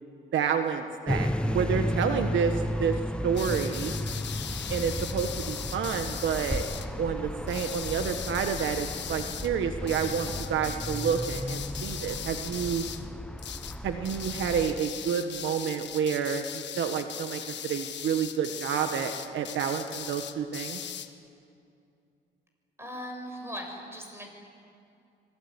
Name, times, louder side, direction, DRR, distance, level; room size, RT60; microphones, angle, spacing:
voice 1, 0.3-1.3 1.5-2.9 3.2-3.9 4.7-6.6 7.0-12.9 13.8-20.8, right 7 dB, 70° right, 6 dB, 1.5 m, -29 dB
sound 1, 1.1-14.8, equal, 5° left, 1.3 m, -34 dB
sound 2, 3.3-6.9 7.5-9.5 9.9-13.1 13.4-13.8 14.0-21.1, left 9 dB, 65° left, 1.5 m, -39 dB
voice 2, 22.8-24.3, equal, 10° right, 2 dB, 7.4 m, -39 dB
25.5 x 21.0 x 9.8 m, 2.5 s
cardioid pair, 90°, 20 cm